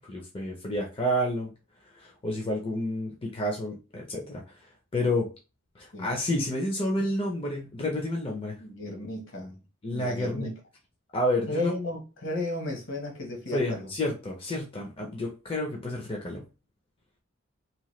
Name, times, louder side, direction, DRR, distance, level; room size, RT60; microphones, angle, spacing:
voice 1, 0.1-1.5 2.0-4.4 4.9-5.3 5.8-8.6 9.8-10.5 11.1-11.7 13.5-16.4, left 1 dB, 25° left, 0.5 m, -30 dB
voice 2, 8.6-9.6 9.9-10.6 11.5-13.9, left 2 dB, 60° left, 1.0 m, -34 dB
2.8 x 2.2 x 3.1 m
head